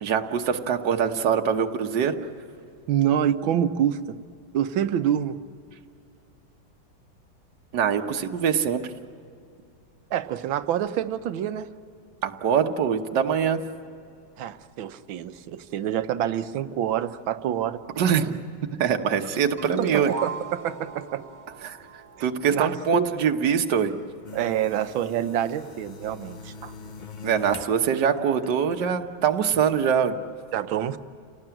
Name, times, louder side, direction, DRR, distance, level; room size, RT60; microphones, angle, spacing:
voice 1, 0.0-2.2 7.7-8.8 12.2-13.6 18.0-18.3 18.8-20.1 21.6-21.8 22.2-23.9 27.2-30.2, right 7 dB, 65° right, 4 dB, 1.7 m, -23 dB
voice 2, 2.9-4.2 4.5-5.4 10.1-11.7 14.4-17.8 19.8-21.2 22.2-23.1 24.3-26.7 30.5-31.0, right 10 dB, 85° right, 10 dB, 1.6 m, -27 dB
sound 1, 19.6-22.8, right 5 dB, 40° right, 1.2 m, -35 dB
sound 2, 24.2-27.8 28.2-28.9, left 4 dB, 55° left, 0.5 m, -42 dB
29.0 x 18.5 x 9.0 m, 2.4 s
omnidirectional pair, 2.1 m